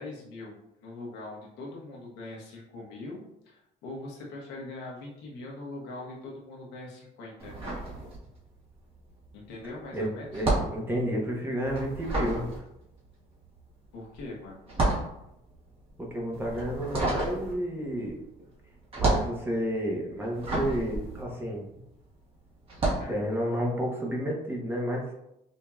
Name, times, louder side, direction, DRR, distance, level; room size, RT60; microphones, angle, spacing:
voice 1, 0.0-7.8 9.3-10.4 13.9-14.6 22.9-23.2, left 2 dB, 90° left, -3 dB, 1.2 m, -42 dB
sound 1, 7.4-8.6 8.9-22.1 22.6-23.2, right 2 dB, 35° right, 1.4 m, -31 dB
voice 2, 9.9-12.6 16.0-18.2 19.0-21.6 23.1-25.0, equal, 15° right, -2 dB, 1.0 m, -31 dB
5.1 x 2.7 x 2.4 m, 0.83 s
cardioid pair, 110°, 17 cm